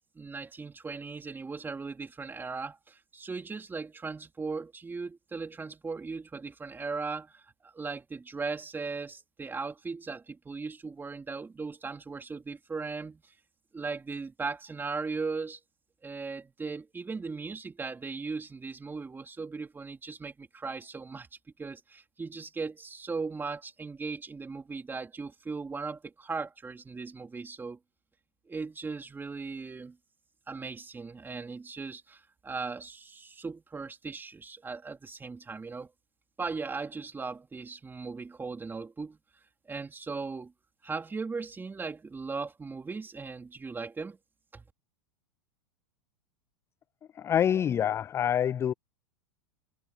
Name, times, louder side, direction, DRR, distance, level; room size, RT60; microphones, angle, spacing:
voice 1, 0.2-13.3 13.7-15.6 16.0-21.3 21.6-27.8 28.5-30.0 30.5-35.9 36.4-39.2 39.7-40.5 40.8-44.2 44.5-44.6, right 4 dB, 15° right, 3.9 m, -38 dB
voice 2, 47.2-48.7, left 9 dB, 15° left, 0.3 m, -26 dB
hypercardioid pair, 115°, 15 cm